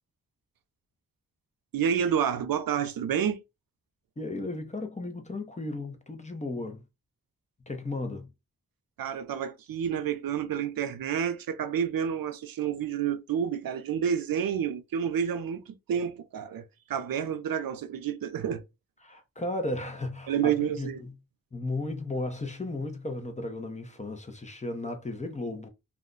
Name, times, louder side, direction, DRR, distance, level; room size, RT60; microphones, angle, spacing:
voice 1, 1.7-3.4 9.0-16.6 16.9-18.6 20.3-21.0, right 8 dB, 85° right, 0.5 m, -29 dB
voice 2, 4.2-6.8 7.7-8.3 19.0-21.1 21.5-25.7, left 2 dB, 20° left, 0.6 m, -35 dB
2.4 x 2.1 x 3.7 m
wide cardioid pair, 100°, 34 cm